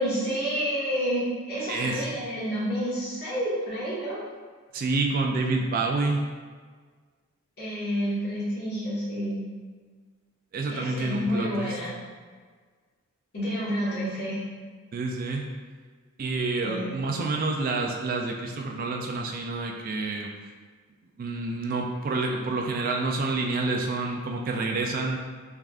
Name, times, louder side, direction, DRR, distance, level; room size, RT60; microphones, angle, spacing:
voice 1, 0.0-4.2 7.6-9.4 10.7-12.0 13.3-14.4 16.6-17.0, equal, 50° left, -8 dB, 1.3 m, -29 dB
voice 2, 1.7-2.2 4.7-6.2 10.5-11.8 14.9-15.5 16.2-20.3 21.2-25.2, right 3 dB, 40° right, 1 dB, 0.3 m, -28 dB
3.6 x 3.4 x 2.4 m, 1.5 s
head